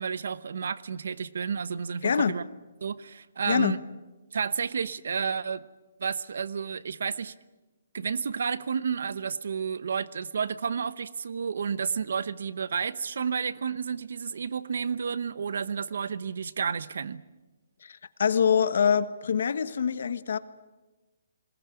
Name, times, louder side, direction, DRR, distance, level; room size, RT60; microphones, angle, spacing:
voice 1, 0.0-2.4 2.8-3.8 4.3-5.7 6.0-7.3 7.9-17.2, right 6 dB, 65° right, 17 dB, 0.9 m, -31 dB
voice 2, 2.0-2.3 3.5-3.8 17.8-20.4, left 7 dB, 60° left, 14 dB, 1.2 m, -25 dB
21.0 x 19.0 x 9.7 m, 1.1 s
hypercardioid pair, 170°, 0 cm